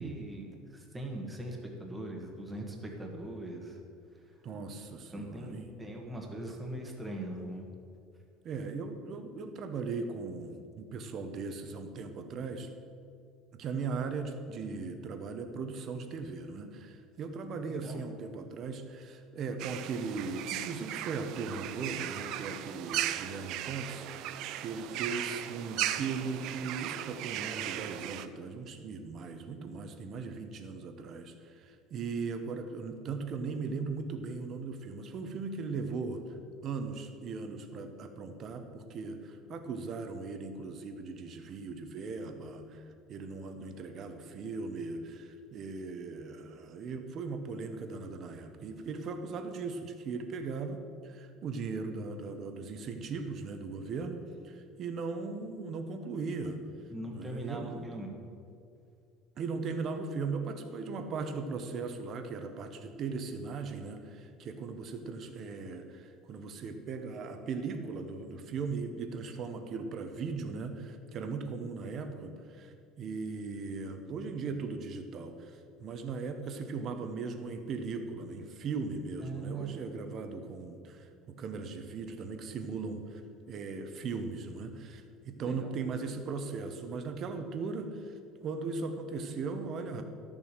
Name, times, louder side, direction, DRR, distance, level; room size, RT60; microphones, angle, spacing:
voice 1, 0.0-3.8 4.1-4.3 5.1-7.6 17.5-18.0 56.9-58.1 79.2-80.1 85.4-85.7, right 1 dB, 5° right, 0 dB, 1.3 m, -41 dB
voice 2, 4.4-5.7 8.4-12.7 13.5-24.1 24.6-36.4 36.6-56.6 57.1-57.9 59.4-83.2 83.5-88.1 88.4-90.0, right 4 dB, 30° right, 7 dB, 0.9 m, -38 dB
sound 1, 19.6-28.3, right 12 dB, 50° right, 0.5 m, -37 dB
12.5 x 7.1 x 6.6 m, 2.4 s
cardioid pair, 175°, 0 cm